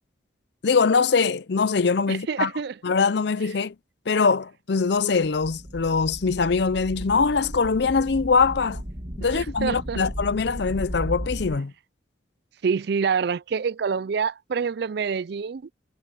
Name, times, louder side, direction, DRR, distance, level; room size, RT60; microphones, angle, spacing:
voice 1, 0.6-2.5 2.8-3.7 4.1-8.8 9.2-11.7, left 5 dB, 60° left, 0.5 m, -22 dB
voice 2, 2.1-2.8 9.2-10.0 12.6-15.7, right 6 dB, 55° right, 0.4 m, -26 dB
sound 1, 4.9-5.0 5.2-11.6, equal, 35° right, 2.1 m, -35 dB
head